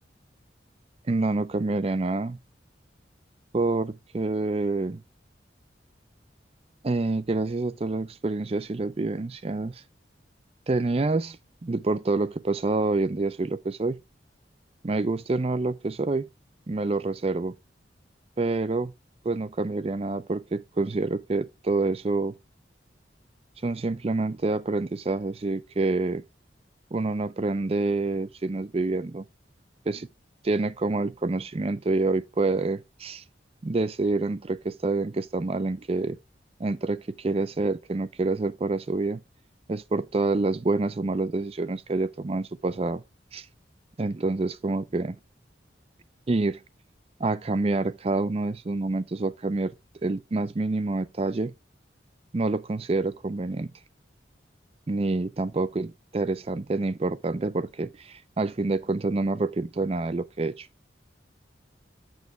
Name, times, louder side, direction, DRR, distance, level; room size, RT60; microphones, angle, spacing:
voice 1, 1.1-2.4 3.5-5.0 6.8-9.7 10.7-14.0 14.8-16.3 16.7-17.5 18.4-18.9 19.2-22.3 23.6-26.2 26.9-29.2 29.9-30.1 30.4-33.2 33.6-36.2 36.6-39.2 39.7-43.0 43.3-43.5 44.0-45.2 46.3-46.6 47.2-49.7 50.0-51.5 52.3-53.7 54.9-60.7, right 3 dB, 35° right, 0.5 m, -27 dB
8.2 x 6.3 x 3.2 m
head